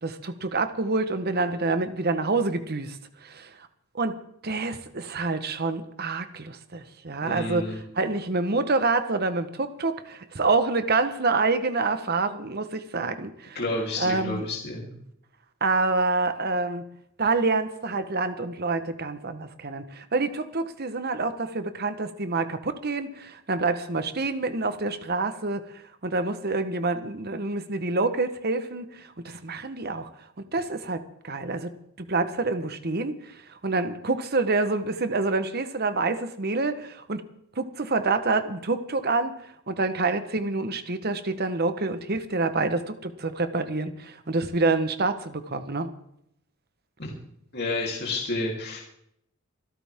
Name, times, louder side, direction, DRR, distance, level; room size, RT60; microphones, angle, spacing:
voice 1, 0.0-3.5 3.9-13.6 14.0-14.5 15.6-16.8 17.2-30.1 30.4-31.7 32.1-37.2 37.6-39.4 39.7-45.9, right 3 dB, 45° right, 10 dB, 1.2 m, -27 dB
voice 2, 7.2-7.8 13.5-14.9 47.0-47.1 47.5-48.8, left 2 dB, 45° left, -3 dB, 3.4 m, -30 dB
25.5 x 12.0 x 3.7 m, 0.72 s
head